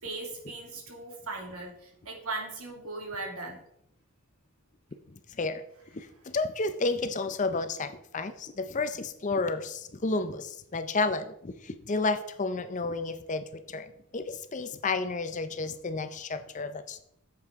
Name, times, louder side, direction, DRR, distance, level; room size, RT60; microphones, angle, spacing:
voice 1, 0.0-1.7 2.1-3.6, right 3 dB, 80° right, 1 dB, 2.2 m, -38 dB
voice 2, 5.3-5.6 5.9-17.0, left 3 dB, 35° left, 10 dB, 0.5 m, -31 dB
9.7 x 7.6 x 3.6 m, 0.75 s
head